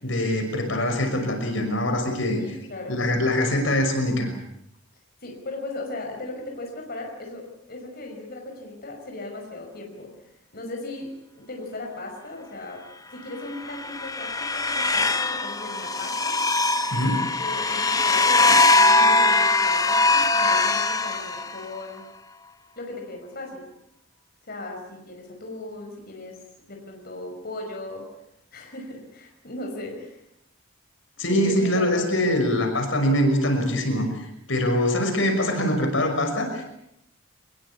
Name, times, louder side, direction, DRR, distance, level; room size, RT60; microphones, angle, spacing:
voice 1, 0.0-2.4 2.9-4.3 16.9-17.2 31.2-36.6, left 1 dB, 70° left, 4 dB, 6.0 m, -23 dB
voice 2, 2.4-3.0 5.2-10.1 10.5-12.8 13.1-16.4 17.4-22.1 22.8-23.7 24.5-26.4 26.7-28.0 28.5-30.2 31.4-32.2, left 2 dB, 50° left, 1 dB, 5.5 m, -37 dB
sound 1, 13.5-21.8, left 3 dB, 20° left, 1.2 m, -21 dB
24.5 x 21.5 x 8.4 m, 0.78 s
head